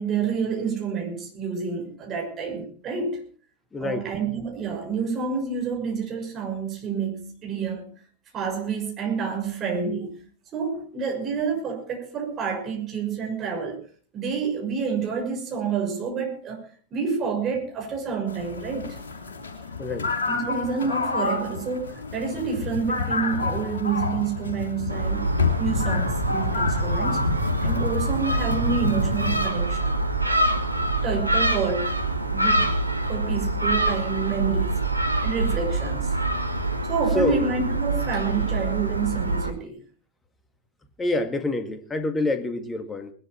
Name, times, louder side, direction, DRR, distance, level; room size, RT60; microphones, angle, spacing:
voice 1, 0.0-3.2 3.8-7.9 8.3-10.2 10.5-13.8 14.1-16.7 16.9-19.0 20.3-30.0 30.7-32.0 32.3-32.7 33.1-34.8 35.2-36.2 36.9-39.8, right 6 dB, 30° right, 1 dB, 6.1 m, -28 dB
voice 2, 3.7-4.1 19.8-20.1 37.1-37.5 38.4-38.5 41.0-43.1, left 2 dB, 15° left, 9 dB, 1.9 m, -27 dB
sound 1, 18.3-29.5, left 4 dB, 70° left, 3.0 m, -28 dB
Gull seagull, 24.9-39.5, right 2 dB, 85° right, 1.3 m, -25 dB
20.5 x 12.0 x 4.4 m, 0.43 s
figure-of-eight pair, 90°, 0 cm